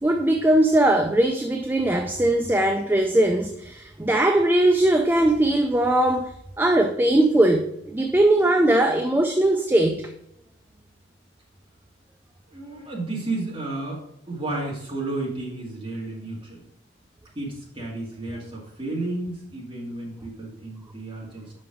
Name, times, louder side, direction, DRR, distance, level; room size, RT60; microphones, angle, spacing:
voice 1, 0.0-6.3 6.6-10.1, right 1 dB, 10° right, 0.3 m, -20 dB
voice 2, 12.5-14.0 14.3-16.6 17.3-21.5, right 2 dB, 25° right, 2.1 m, -32 dB
5.6 x 5.2 x 4.9 m
head